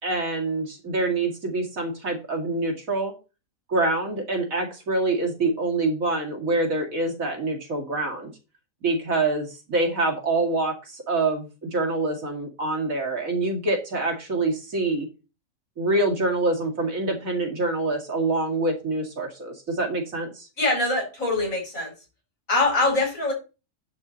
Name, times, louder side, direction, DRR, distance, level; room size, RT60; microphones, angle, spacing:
voice 1, 0.0-3.1 3.7-8.3 8.8-15.1 15.8-20.5, right 2 dB, 90° right, 1 dB, 2.7 m, -26 dB
voice 2, 20.6-21.9 22.5-23.3, left 2 dB, 85° left, 0 dB, 5.0 m, -23 dB
10.5 x 4.1 x 6.2 m, 0.31 s
omnidirectional pair, 1.4 m